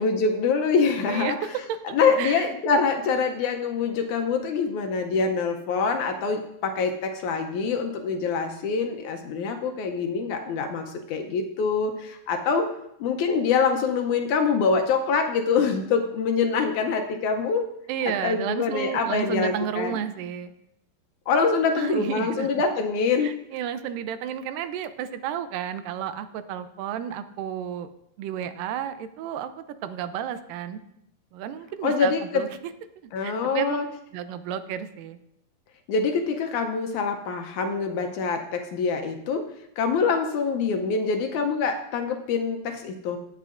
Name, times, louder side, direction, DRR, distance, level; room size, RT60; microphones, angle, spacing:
voice 1, 0.0-1.4 1.8-12.7 13.0-17.7 18.2-20.0 21.3-23.3 31.8-32.4 33.1-33.9 35.9-39.4 39.8-43.2, left 5 dB, 75° left, 5 dB, 1.9 m, -25 dB
voice 2, 1.1-2.5 17.9-20.5 21.8-22.5 23.2-27.9 28.2-29.5 29.8-30.8 31.3-32.5 33.0-33.8 34.1-35.2, right 9 dB, 85° right, 11 dB, 2.3 m, -32 dB
17.0 x 8.3 x 2.5 m, 0.79 s
omnidirectional pair, 3.9 m